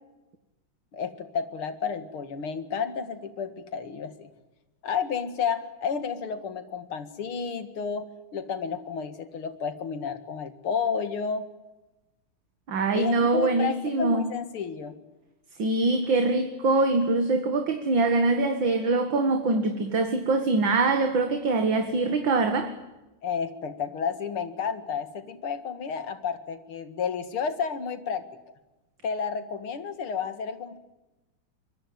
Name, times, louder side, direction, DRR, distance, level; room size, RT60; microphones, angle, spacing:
voice 1, 0.9-4.3 4.8-8.1 8.3-11.5 12.9-15.0 23.2-28.2 29.0-30.8, left 6 dB, 90° left, 2.8 m, -31 dB
voice 2, 12.7-14.3 15.6-22.7, right 3 dB, 65° right, 2.6 m, -24 dB
25.5 x 22.5 x 9.3 m
omnidirectional pair, 2.3 m